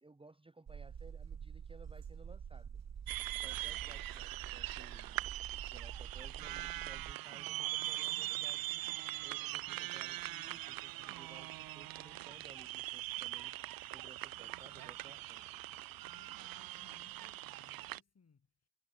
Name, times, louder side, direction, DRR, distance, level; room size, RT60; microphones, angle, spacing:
voice 1, 0.0-2.8 3.4-15.7, right 2 dB, 15° right, 1.0 m, -59 dB
sound 1, 0.7-7.1, right 7 dB, 45° right, 1.4 m, -47 dB
sound 2, 3.1-18.0, right 16 dB, 70° right, 0.6 m, -42 dB
voice 2, 16.0-18.7, left 5 dB, 45° left, 4.1 m, -66 dB
hypercardioid pair, 40°, 37 cm